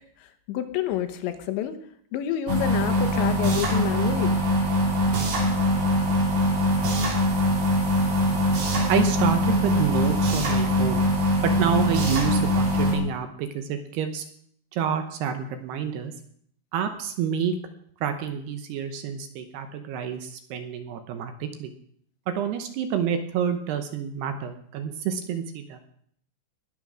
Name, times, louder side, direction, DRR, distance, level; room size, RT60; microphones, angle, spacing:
voice 1, 0.5-1.7 2.1-4.3, left 11 dB, 80° left, 9 dB, 3.2 m, -28 dB
sound 1, 2.5-13.0, equal, 55° right, 4.1 m, -22 dB
voice 2, 8.9-11.0 11.4-14.2 14.7-16.1 16.7-17.5 18.0-21.7 22.4-25.8, right 8 dB, 75° right, 8 dB, 2.8 m, -28 dB
20.5 x 7.7 x 6.3 m, 0.64 s
omnidirectional pair, 5.3 m